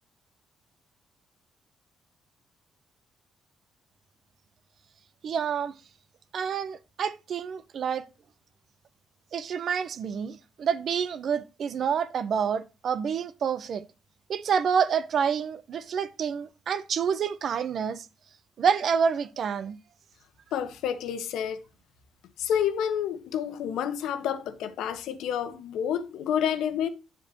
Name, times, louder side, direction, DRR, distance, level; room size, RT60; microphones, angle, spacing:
voice 1, 5.2-5.7 6.3-8.1 9.3-13.9 14.3-18.1 18.6-19.8, right 7 dB, 50° right, 0.8 m, -28 dB
voice 2, 20.5-21.6 22.4-26.9, left 9 dB, 85° left, 1.3 m, -29 dB
10.0 x 7.3 x 2.9 m
cardioid pair, 145°, 0 cm